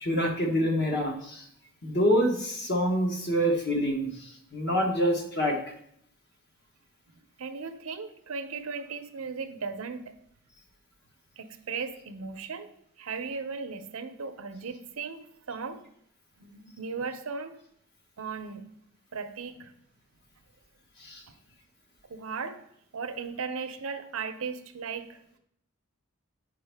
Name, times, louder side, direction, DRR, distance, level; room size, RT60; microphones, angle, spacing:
voice 1, 0.0-1.4 1.8-5.6 21.0-21.2, equal, 50° left, 1 dB, 1.1 m, -26 dB
voice 2, 7.4-10.1 11.4-12.7 13.0-15.2 15.5-15.8 16.4-17.6 18.2-18.7 19.1-19.7 22.1-22.6 22.9-25.2, right 5 dB, 75° right, 9 dB, 0.6 m, -36 dB
8.7 x 5.0 x 3.4 m, 0.71 s
head